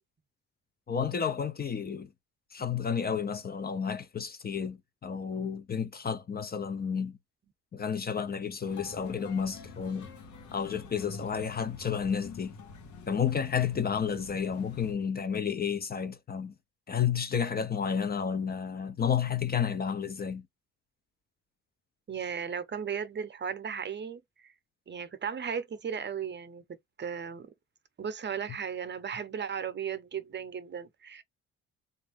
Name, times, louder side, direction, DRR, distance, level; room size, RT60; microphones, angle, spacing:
voice 1, 0.9-2.1 2.5-7.2 7.7-10.1 10.5-12.6 13.1-16.5 16.9-20.5, left 7 dB, 30° left, 0.5 m, -31 dB
sound 1, 8.6-14.9, left 4 dB, 75° left, 1.0 m, -46 dB
voice 2, 22.1-24.5 24.9-27.5 28.0-31.2, right 7 dB, 35° right, 0.7 m, -36 dB
3.6 x 2.5 x 3.5 m
cardioid pair, 90°, 30 cm